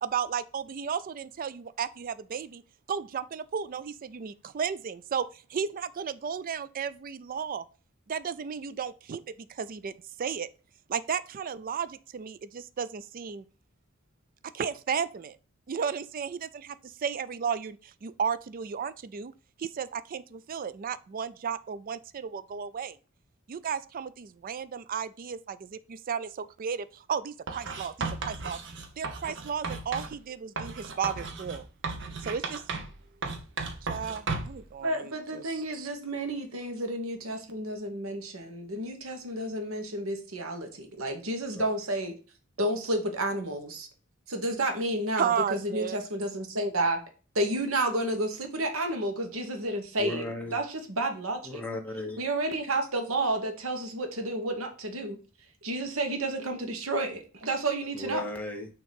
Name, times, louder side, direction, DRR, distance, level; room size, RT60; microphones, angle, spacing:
voice 1, 0.0-2.6 2.9-7.6 8.1-10.5 10.9-13.4 14.5-15.4 15.7-19.3 19.6-23.0 23.5-28.6 29.0-31.7 32.2-32.6 33.8-35.9 45.2-46.0, right 7 dB, 45° right, 0.4 m, -34 dB
Writing, 27.5-30.2 30.6-33.0 33.2-34.6, right 4 dB, 60° right, 1.0 m, -35 dB
voice 2, 34.8-42.2 42.6-43.9 44.3-47.0 47.3-50.2 50.5-51.6 52.2-55.2 55.6-58.2, right 1 dB, 80° right, 1.3 m, -31 dB
voice 3, 50.0-50.6 51.4-52.2 57.9-58.7, left 2 dB, 5° left, 1.0 m, -35 dB
6.2 x 2.9 x 5.2 m
head